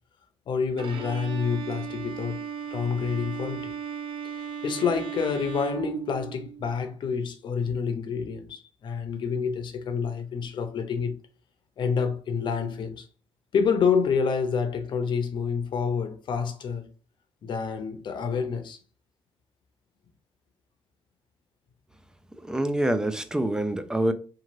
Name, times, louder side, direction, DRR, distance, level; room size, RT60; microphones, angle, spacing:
voice 1, 0.5-2.4 2.7-3.7 4.3-11.1 11.8-13.0 13.5-16.9 17.4-18.8, left 6 dB, 60° left, 0.7 m, -28 dB
Bowed string instrument, 0.8-6.7, right 7 dB, 70° right, 0.5 m, -36 dB
voice 2, 22.4-24.1, right 1 dB, 5° right, 0.4 m, -26 dB
3.0 x 2.4 x 2.6 m
cardioid pair, 85°, 9 cm